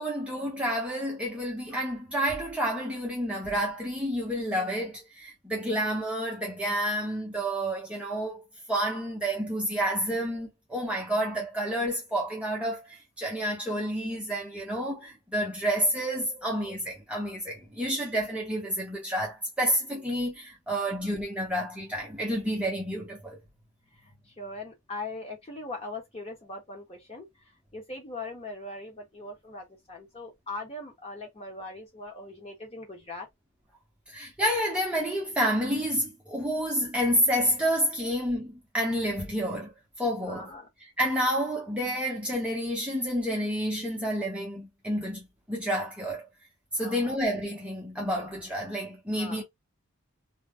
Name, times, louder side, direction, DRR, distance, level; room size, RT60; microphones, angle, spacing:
voice 1, 0.0-8.4 8.7-23.4 34.1-39.7 40.0-40.5 41.0-46.3 46.7-49.4, equal, 5° right, 0.6 m, -29 dB
voice 2, 24.4-27.3 27.7-33.3 38.0-38.1 40.3-40.7 46.8-47.1 49.1-49.4, left 2 dB, 25° left, 1.0 m, -40 dB
2.2 x 2.0 x 3.4 m
head